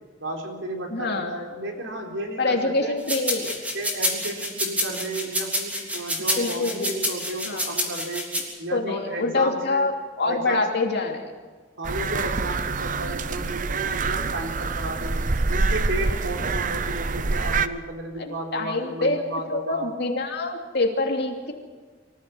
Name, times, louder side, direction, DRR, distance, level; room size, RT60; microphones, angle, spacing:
voice 1, 0.2-3.0 3.7-8.3 8.6-9.9 10.2-10.7 11.8-15.2 15.5-19.9, right 1 dB, 75° right, 1 dB, 4.0 m, -33 dB
voice 2, 0.9-1.3 2.4-3.6 6.4-6.9 7.4-7.8 8.7-11.2 18.2-19.2 19.5-21.5, left 2 dB, 55° left, 2 dB, 2.8 m, -25 dB
sound 1, 3.1-8.4, equal, 10° right, 3.4 m, -27 dB
sound 2, 11.8-17.7, right 4 dB, 40° right, 0.7 m, -26 dB
24.5 x 15.0 x 7.9 m, 1.5 s
head